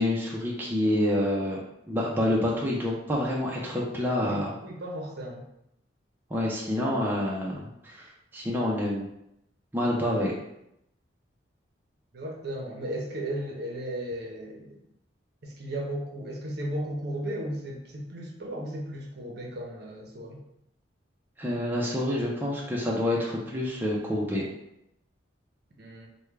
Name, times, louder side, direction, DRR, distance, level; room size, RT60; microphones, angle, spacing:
voice 1, 0.0-1.6 1.9-4.5 6.3-8.1 8.3-9.1 9.7-10.3 21.4-24.4, left 1 dB, 10° right, -4 dB, 0.5 m, -27 dB
voice 2, 4.2-5.4 12.1-14.8 15.4-20.4 25.8-26.1, right 1 dB, 55° right, 0 dB, 0.6 m, -35 dB
3.4 x 2.2 x 3.2 m, 0.80 s
head